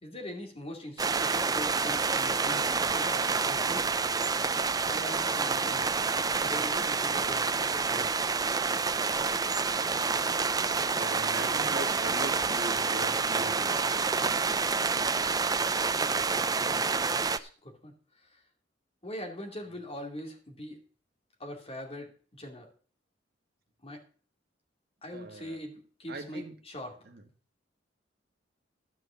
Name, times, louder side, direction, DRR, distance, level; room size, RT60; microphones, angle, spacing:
voice 1, 0.0-3.9 4.8-8.2 16.6-18.4 19.0-20.8 21.4-22.7 23.8-24.0 25.0-27.1, left 1 dB, 30° left, 3 dB, 2.5 m, -42 dB
sound 1, 1.0-17.4, right 4 dB, 20° right, 0.5 m, -28 dB
voice 2, 10.9-14.1 25.1-25.6 26.1-26.5 27.0-27.2, right 2 dB, 55° right, 5 dB, 1.9 m, -41 dB
13.0 x 5.8 x 7.0 m, 0.41 s
head